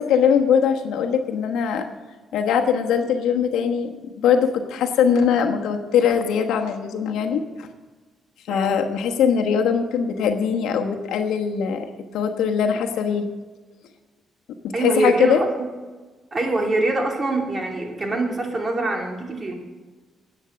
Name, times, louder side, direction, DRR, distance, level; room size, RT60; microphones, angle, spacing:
voice 1, 0.0-1.9 2.3-7.7 8.5-11.9 12.1-13.3 14.6-15.4, left 7 dB, 85° left, 4 dB, 1.2 m, -21 dB
voice 2, 8.5-8.8 14.7-15.7 16.3-19.5, right 2 dB, 35° right, 2 dB, 2.8 m, -24 dB
11.0 x 8.9 x 7.6 m, 1.3 s
cardioid pair, 80°, 0 cm